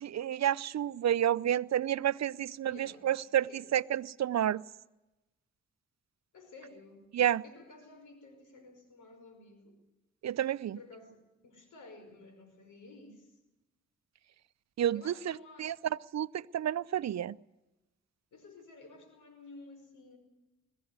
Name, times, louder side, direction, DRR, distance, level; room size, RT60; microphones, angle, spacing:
voice 1, 0.0-4.6 7.1-7.4 10.2-10.8 14.8-15.7 16.1-17.4, right 11 dB, 60° right, 19 dB, 0.6 m, -30 dB
voice 2, 2.7-3.7 6.3-7.1 7.4-9.8 10.6-13.4 14.9-15.8 18.3-20.2, left 3 dB, 80° left, 7 dB, 5.3 m, -53 dB
21.5 x 15.0 x 9.5 m, 1.0 s
supercardioid pair, 50°, 30 cm